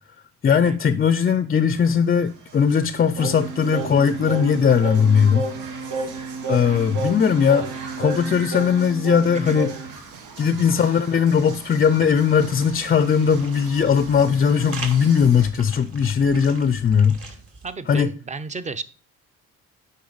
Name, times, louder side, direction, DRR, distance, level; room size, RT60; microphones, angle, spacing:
voice 1, 0.4-5.5 6.5-7.7 8.0-9.7 10.4-17.2 17.9-18.1, left 7 dB, 30° left, 0.4 m, -19 dB
sound 1, 1.7-15.5, right 5 dB, 90° right, 1.1 m, -41 dB
Singing, 3.2-10.0, right 3 dB, 75° right, 1.5 m, -31 dB
voice 2, 9.3-9.7 17.3-17.4 17.6-18.8, right 4 dB, 25° right, 0.6 m, -33 dB
sound 2, 11.8-17.7, right 3 dB, 50° right, 2.0 m, -41 dB
8.5 x 5.3 x 3.9 m
cardioid pair, 90°, 30 cm